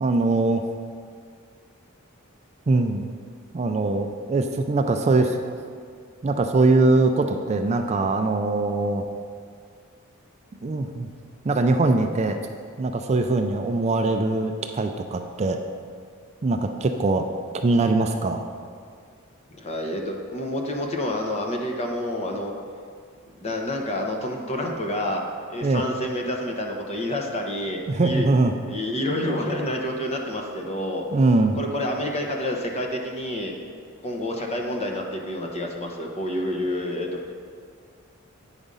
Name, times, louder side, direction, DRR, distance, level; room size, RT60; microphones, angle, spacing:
voice 1, 0.0-0.6 2.7-3.0 3.5-5.4 6.2-9.0 10.6-11.1 11.4-12.4 12.8-15.6 16.4-17.2 17.5-18.5 25.6-25.8 27.9-28.5 31.1-31.6, right 2 dB, 30° right, 5 dB, 0.4 m, -22 dB
voice 2, 19.6-22.5 23.3-25.2 25.5-28.3 28.7-31.1 31.6-33.6 34.0-37.2, left 1 dB, 30° left, 1 dB, 1.0 m, -28 dB
9.0 x 5.0 x 5.4 m, 2.1 s
head